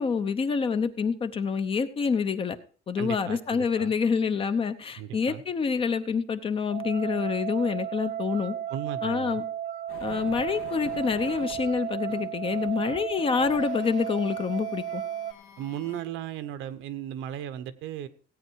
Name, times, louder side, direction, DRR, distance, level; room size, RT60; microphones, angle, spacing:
voice 1, 0.0-2.6 2.9-8.5 9.0-9.4 10.0-15.0, left 5 dB, 25° left, 11 dB, 0.8 m, -27 dB
voice 2, 3.0-3.9 5.0-5.4 8.7-9.4 15.6-18.1, right 11 dB, 70° right, 12 dB, 1.1 m, -36 dB
sound 1, 6.7-15.3, right 10 dB, 35° right, 0.6 m, -34 dB
sound 2, 9.9-16.0, left 8 dB, 75° left, 2.1 m, -48 dB
16.5 x 8.8 x 4.6 m, 0.41 s
cardioid pair, 155°, 21 cm